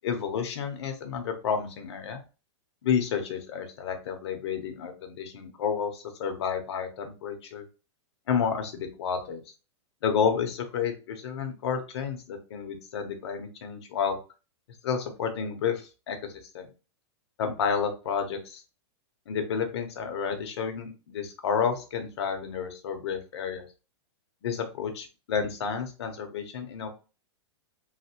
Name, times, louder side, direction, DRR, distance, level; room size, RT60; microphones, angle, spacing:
voice 1, 0.0-2.2 2.8-7.6 8.3-9.4 10.0-14.2 14.8-16.7 17.4-18.6 19.3-23.6 24.4-26.9, left 6 dB, 65° left, 5 dB, 0.8 m, -30 dB
3.2 x 2.1 x 2.9 m, 0.33 s
supercardioid pair, 160°, 15 cm